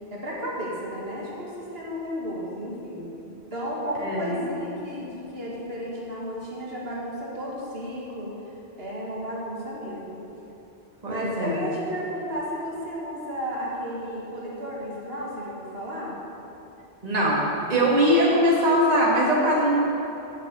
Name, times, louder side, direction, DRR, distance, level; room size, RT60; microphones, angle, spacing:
voice 1, 0.1-8.3 8.8-10.2 11.0-16.2, equal, 70° right, -5 dB, 2.0 m, -33 dB
voice 2, 4.0-4.4 11.0-11.5 17.0-17.4 17.7-19.8, equal, 40° right, -5 dB, 1.7 m, -21 dB
7.4 x 7.1 x 8.3 m, 2.9 s
omnidirectional pair, 1.1 m